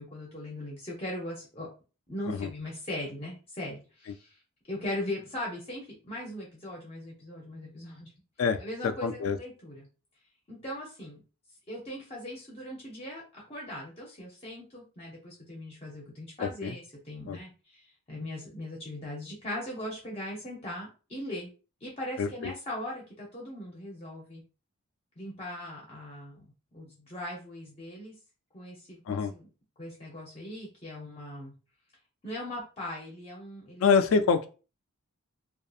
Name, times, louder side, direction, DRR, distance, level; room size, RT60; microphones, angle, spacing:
voice 1, 0.0-1.7 2.1-4.4 4.6-8.1 8.6-9.9 10.5-11.2 11.7-21.5 21.8-24.4 25.2-28.2 28.5-29.5 29.8-31.5 32.2-34.0, left 1 dB, 25° left, 0.6 m, -39 dB
voice 2, 8.4-9.4 16.4-16.7 17.3-17.4 22.2-22.5 29.1-29.3 33.8-34.5, left 5 dB, 65° left, 0.3 m, -26 dB
2.6 x 2.4 x 2.3 m
head